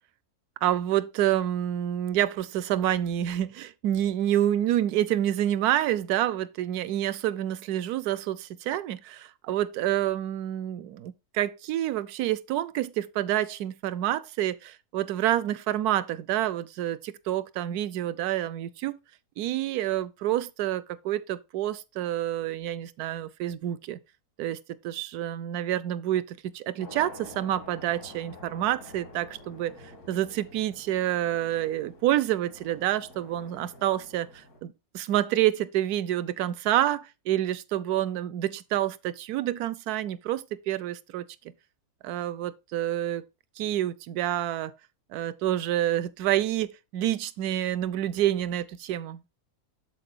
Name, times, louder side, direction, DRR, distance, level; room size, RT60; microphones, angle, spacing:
voice 1, 0.6-19.0 19.4-24.0 24.4-29.7 30.1-41.3 42.0-43.2 43.6-44.7 45.1-49.2, right 12 dB, 80° right, 1.1 m, -28 dB
sound 1, 26.8-34.6, left 2 dB, 85° left, 2.8 m, -49 dB
13.0 x 4.4 x 2.5 m
omnidirectional pair, 1.6 m